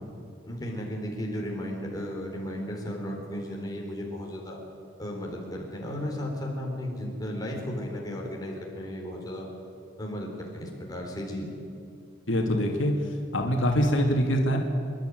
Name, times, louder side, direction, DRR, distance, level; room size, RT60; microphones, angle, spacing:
voice 1, 0.5-4.6 5.0-9.5 10.0-11.5, equal, 20° left, -1 dB, 4.0 m, -34 dB
voice 2, 12.3-12.9 13.3-14.6, equal, 75° left, 2 dB, 2.6 m, -24 dB
26.0 x 12.0 x 9.4 m, 2.5 s
head